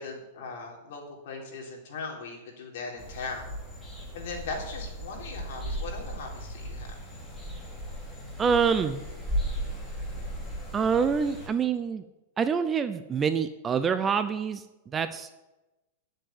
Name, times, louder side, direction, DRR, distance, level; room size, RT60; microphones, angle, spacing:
voice 1, 0.0-3.5 4.1-6.9, left 4 dB, 60° left, 0 dB, 3.9 m, -39 dB
sound 1, 3.0-11.5, right 1 dB, 10° left, 2.5 m, -36 dB
voice 2, 8.4-9.0 10.7-12.0 12.4-14.6 14.9-15.3, right 6 dB, 15° right, 11 dB, 0.5 m, -26 dB
9.7 x 7.8 x 8.8 m, 1.0 s
supercardioid pair, 170°, 0 cm